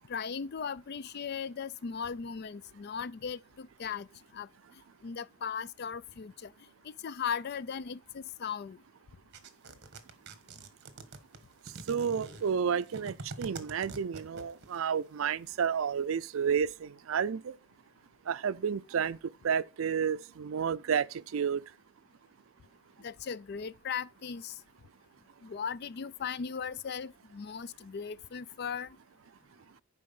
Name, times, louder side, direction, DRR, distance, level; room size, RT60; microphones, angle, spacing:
voice 1, 0.1-4.1 4.3-4.5 5.0-6.5 6.8-8.8 23.0-24.6 25.4-29.0, left 6 dB, 50° left, 0.4 m, -38 dB
sound 1, 9.3-14.8, right 3 dB, 55° right, 1.3 m, -45 dB
voice 2, 11.9-17.6 18.3-19.2 19.4-21.6, right 7 dB, 80° right, 0.4 m, -31 dB
10.5 x 4.8 x 5.4 m
head